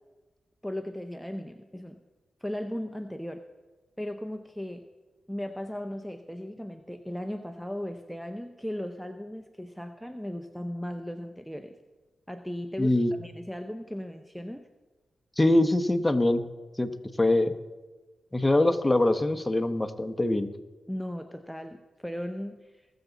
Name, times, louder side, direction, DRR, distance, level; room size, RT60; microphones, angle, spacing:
voice 1, 0.6-1.9 2.4-3.4 4.0-4.8 5.3-11.8 12.3-14.6 20.9-22.7, left 1 dB, ahead, 6 dB, 0.7 m, -37 dB
voice 2, 12.8-13.1 15.4-16.4 16.8-16.9 17.2-17.5 18.3-20.5, left 1 dB, 15° left, 7 dB, 1.1 m, -23 dB
20.0 x 7.1 x 4.0 m, 1.2 s
cardioid pair, 50°, 0 cm